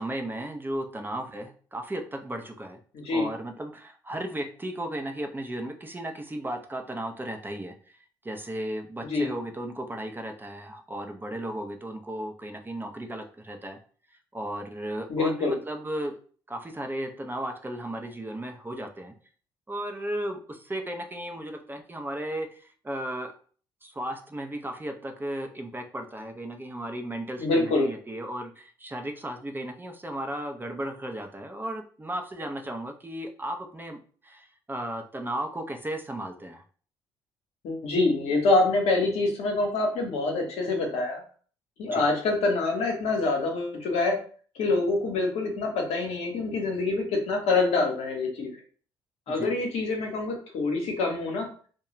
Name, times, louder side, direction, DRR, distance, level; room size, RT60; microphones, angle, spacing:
voice 1, 0.0-2.8 3.1-7.7 8.2-13.8 14.3-16.2 16.5-19.1 19.7-23.3 23.8-36.6 41.9-42.0 49.3-49.5, right 1 dB, 15° right, 4 dB, 0.6 m, -35 dB
voice 2, 2.9-3.3 9.0-9.3 15.1-15.6 27.4-27.9 37.6-41.2 41.8-44.2 44.6-48.6 49.3-51.5, left 3 dB, 70° left, 1 dB, 0.9 m, -26 dB
2.3 x 2.2 x 2.9 m, 0.43 s
hypercardioid pair, 50°, 11 cm